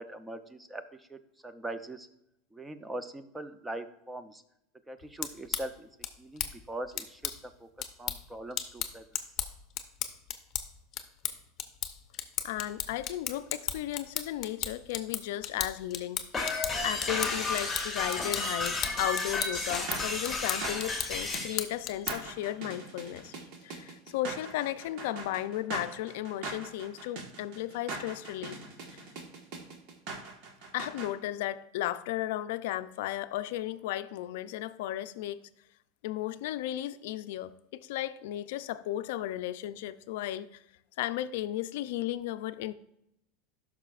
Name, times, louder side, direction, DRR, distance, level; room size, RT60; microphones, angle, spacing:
voice 1, 0.0-2.1 2.5-4.4 4.9-5.9 6.2-7.3 7.6-7.7 8.0-9.0, right 1 dB, 10° right, 0.6 m, -41 dB
sound 1, 5.0-22.4, left 10 dB, 40° left, 0.7 m, -37 dB
voice 2, 12.4-16.2 16.5-23.4 23.6-28.6 28.9-29.0 30.7-35.4 36.0-40.6 41.0-42.7, left 13 dB, 75° left, 0.4 m, -35 dB
sound 2, 16.3-21.6, left 3 dB, 10° left, 1.7 m, -32 dB
sound 3, 19.5-31.1, right 3 dB, 60° right, 1.4 m, -41 dB
13.0 x 6.0 x 2.4 m
supercardioid pair, 135°, 0 cm